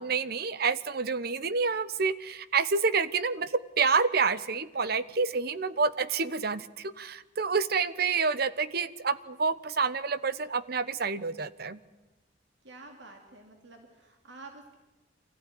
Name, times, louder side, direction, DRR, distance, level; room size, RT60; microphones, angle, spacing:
voice 1, 0.0-11.8, right 4 dB, 60° right, 15 dB, 1.0 m, -28 dB
voice 2, 12.6-14.8, right 3 dB, 85° right, 3 dB, 2.8 m, -49 dB
25.5 x 15.5 x 10.0 m, 1.1 s
head